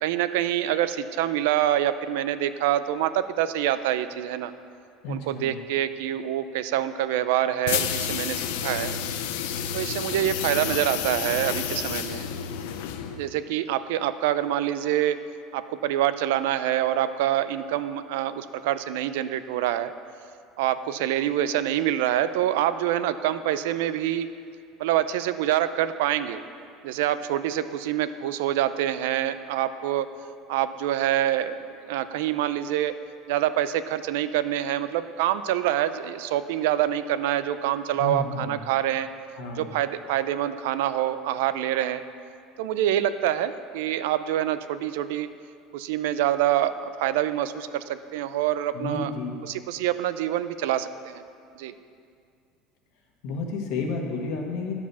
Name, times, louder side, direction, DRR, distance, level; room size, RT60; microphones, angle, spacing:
voice 1, 0.0-4.5 5.1-9.0 9.7-12.3 13.1-15.2 15.5-19.9 20.6-24.3 24.8-26.4 26.8-30.1 30.5-31.5 31.9-32.9 33.3-39.1 39.6-42.0 42.6-45.3 45.7-49.1 49.4-51.2 51.6-51.7, right 12 dB, 90° right, 13 dB, 0.4 m, -26 dB
voice 2, 5.0-5.6 38.0-38.5 39.4-39.6 48.7-49.4 53.2-54.7, left 3 dB, 60° left, 1 dB, 1.5 m, -31 dB
sound 1, 7.6-13.3, left 9 dB, 85° left, 0.5 m, -30 dB
10.5 x 5.0 x 6.8 m, 2.3 s
cardioid pair, 160°, 0 cm